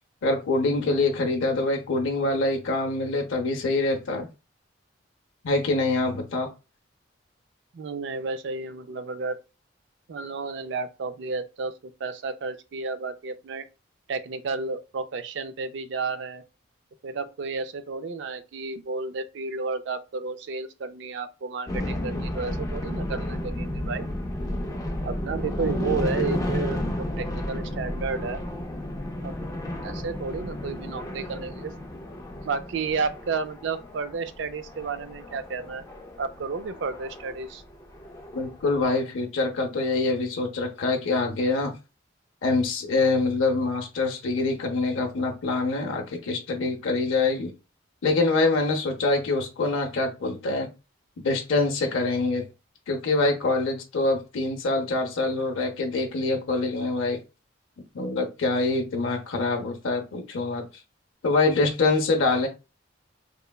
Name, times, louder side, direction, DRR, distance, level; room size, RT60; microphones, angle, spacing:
voice 1, 0.2-4.3 5.4-6.5 38.3-41.7 42.4-47.5 48.0-50.7 51.2-52.4 52.9-57.2 57.9-60.7 61.2-62.5, left 3 dB, 80° left, 0.5 m, -25 dB
voice 2, 7.7-9.4 10.1-11.8 12.0-13.7 14.1-16.4 17.0-24.1 25.0-28.4 29.2-29.4 29.8-31.7 32.4-35.8 36.2-37.6, right 4 dB, 60° right, 0.3 m, -32 dB
sound 1, 21.7-38.9, left 1 dB, 15° left, 0.4 m, -32 dB
3.0 x 2.1 x 2.2 m
head